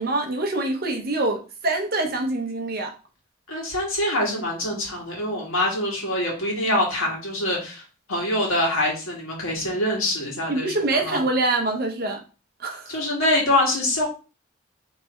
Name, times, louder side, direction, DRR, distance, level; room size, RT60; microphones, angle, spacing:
voice 1, 0.0-2.9 10.5-12.2 12.6-12.9, right 2 dB, 45° right, 0.8 m, -25 dB
voice 2, 3.5-7.8 8.1-11.2 12.9-14.1, left 1 dB, 85° left, 1.9 m, -24 dB
3.3 x 3.3 x 4.3 m
head